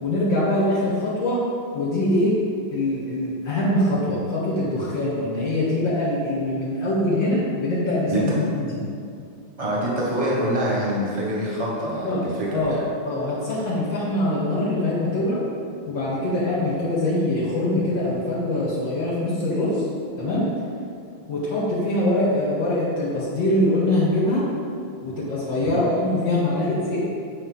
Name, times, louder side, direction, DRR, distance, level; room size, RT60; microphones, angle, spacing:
voice 1, 0.0-1.4 1.7-2.3 2.7-8.8 12.0-12.2 12.5-12.8 13.0-15.4 15.9-19.9 20.2-20.5 21.3-24.5 25.0-27.1, left 1 dB, 65° left, -8 dB, 1.9 m, -23 dB
voice 2, 9.6-12.8 25.6-25.8, right 1 dB, 20° right, -5 dB, 1.2 m, -25 dB
7.8 x 4.3 x 3.9 m, 2.4 s
omnidirectional pair, 2.2 m